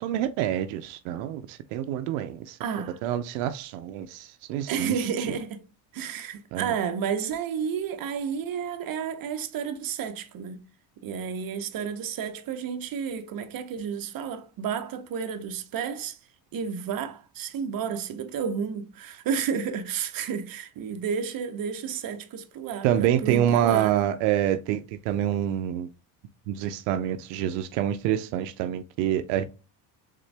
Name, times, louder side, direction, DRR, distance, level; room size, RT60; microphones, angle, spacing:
voice 1, 0.0-2.6 3.0-4.9 6.5-6.7 22.8-25.9 26.5-29.4, right 11 dB, 85° right, 0.6 m, -26 dB
voice 2, 2.6-3.0 4.7-5.6 5.9-10.6 11.0-16.2 16.5-24.0, right 7 dB, 45° right, 0.9 m, -31 dB
3.8 x 3.7 x 3.3 m
supercardioid pair, 100°, 47 cm